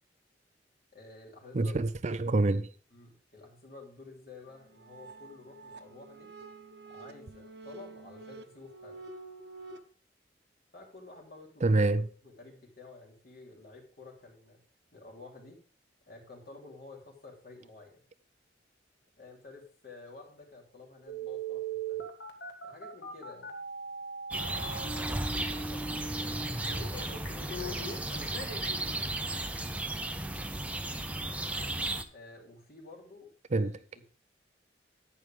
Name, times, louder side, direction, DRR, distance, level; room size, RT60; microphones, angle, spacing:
voice 1, 0.9-1.8 2.9-6.3 6.9-9.1 10.7-14.6 14.9-15.6 16.1-18.0 19.2-22.1 22.6-23.5 24.9-28.7 32.1-34.0, left 3 dB, 55° left, 3.4 m, -51 dB
voice 2, 1.5-2.7 11.6-12.1 33.5-33.7, right 2 dB, 40° right, 0.5 m, -26 dB
sound 1, 4.5-9.8, right 3 dB, 70° right, 1.2 m, -49 dB
Telephone, 21.1-29.0 29.6-29.7, right 3 dB, 70° left, 1.9 m, -40 dB
sound 2, 24.3-32.0, right 2 dB, 10° right, 0.8 m, -35 dB
11.0 x 9.1 x 3.6 m
head